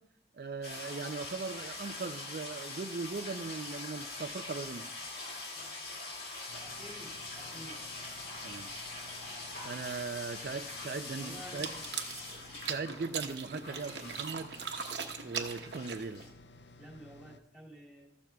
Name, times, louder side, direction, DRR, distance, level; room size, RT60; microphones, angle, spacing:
voice 1, 0.3-4.9 7.5-7.6 8.4-8.7 9.6-11.7 12.7-14.5 15.2-16.3, right 4 dB, 55° right, 8 dB, 0.4 m, -39 dB
sound 1, 0.6-13.0 13.3-15.1 15.5-16.3, left 3 dB, 65° left, 2.3 m, -43 dB
sound 2, 6.5-17.4, left 2 dB, 80° left, 0.6 m, -56 dB
voice 2, 6.6-7.8 11.1-11.9 16.6-18.1, equal, 5° right, -4 dB, 2.4 m, -51 dB
sound 3, 11.4-16.3, right 6 dB, 80° right, 1.0 m, -40 dB
14.5 x 12.0 x 2.3 m, 0.84 s
head